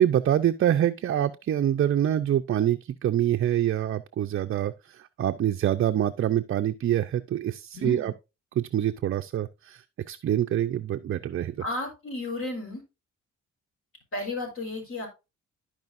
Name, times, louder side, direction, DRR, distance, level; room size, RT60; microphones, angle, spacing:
voice 1, 0.0-8.1 8.6-11.6, right 11 dB, 45° right, 0.5 m, -25 dB
voice 2, 7.7-8.1 11.6-12.8 14.1-15.1, left 2 dB, 45° left, 4.2 m, -33 dB
14.0 x 5.0 x 2.5 m
cardioid pair, 90°, 30 cm